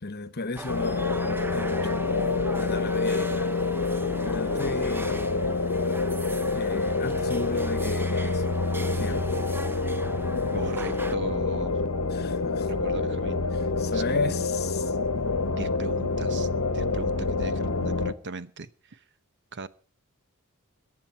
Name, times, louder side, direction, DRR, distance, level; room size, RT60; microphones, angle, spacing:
voice 1, 0.0-3.5 4.2-5.3 6.5-8.4 8.9-9.3 12.1-12.7 13.5-14.9, left 3 dB, 50° left, 1.2 m, -35 dB
sound 1, 0.6-11.2, right 2 dB, 10° right, 0.6 m, -40 dB
sound 2, 0.7-18.1, left 3 dB, 75° left, 1.1 m, -27 dB
voice 2, 10.5-11.8 12.7-13.4 13.9-14.4 15.5-16.5 16.7-19.0 19.5-19.7, right 3 dB, 55° right, 0.8 m, -38 dB
22.0 x 9.6 x 4.5 m
head